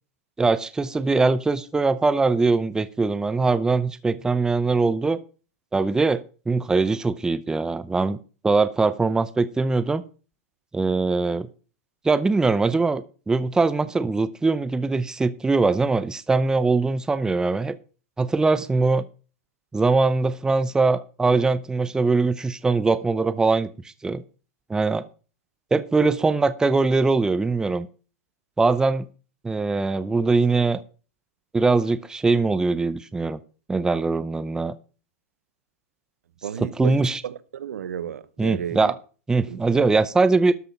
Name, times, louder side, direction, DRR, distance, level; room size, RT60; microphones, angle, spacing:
voice 1, 0.4-5.2 5.7-8.2 8.4-10.0 10.7-11.5 12.0-17.8 18.2-19.0 19.7-23.7 24.0-24.2 24.7-25.1 25.7-27.9 28.6-29.1 29.4-30.8 31.5-33.4 33.7-34.7 36.6-37.2 38.4-39.0 39.3-40.5, right 3 dB, 10° right, 0.6 m, -22 dB
voice 2, 36.4-38.9 39.5-39.8, right 9 dB, 75° right, 1.0 m, -33 dB
13.0 x 6.1 x 5.8 m
hypercardioid pair, 115°, 8 cm